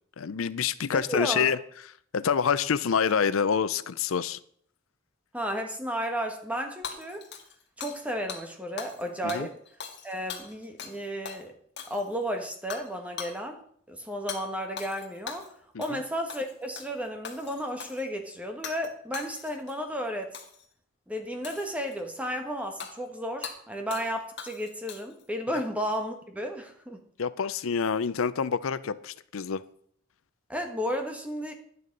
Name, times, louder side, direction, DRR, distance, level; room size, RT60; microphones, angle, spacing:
voice 1, 0.2-1.6 2.1-4.4 9.2-9.5 15.7-16.0 27.2-29.6, left 6 dB, 80° left, 15 dB, 0.5 m, -27 dB
voice 2, 0.9-1.5 5.3-7.2 7.8-9.5 10.0-11.5 11.9-13.6 13.9-15.5 15.8-20.4 21.1-27.0 30.5-31.5, equal, 5° right, 5 dB, 1.4 m, -33 dB
Hammer / Shatter, 6.8-8.0 8.3-8.4 8.8-9.0 9.3-11.0 11.3-11.4 11.8-12.2 12.7-12.9 13.2-13.4 14.3-14.4 14.8-15.5 15.8-16.0 16.3-16.9 17.2-18.0 18.6-18.9 19.1-19.7 20.3-20.7 21.4-22.0 22.8-22.9 23.4-23.6 23.9-24.1 24.4-25.2, left 6 dB, 55° left, 1.9 m, -40 dB
11.0 x 9.4 x 5.3 m, 0.62 s
head